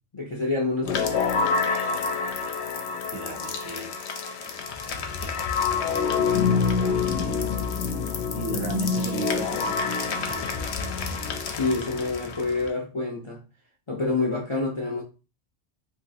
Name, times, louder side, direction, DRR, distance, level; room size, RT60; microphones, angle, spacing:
voice 1, 0.1-1.2 11.5-13.4 13.9-15.0, left 3 dB, 45° left, 0.4 m, -27 dB
sound 1, 0.8-12.7, left 5 dB, 75° left, 0.8 m, -27 dB
voice 2, 3.1-3.9 4.8-7.5 8.3-9.8 10.1-10.7, right 5 dB, 65° right, 0.8 m, -38 dB
3.0 x 2.6 x 2.7 m
omnidirectional pair, 1.2 m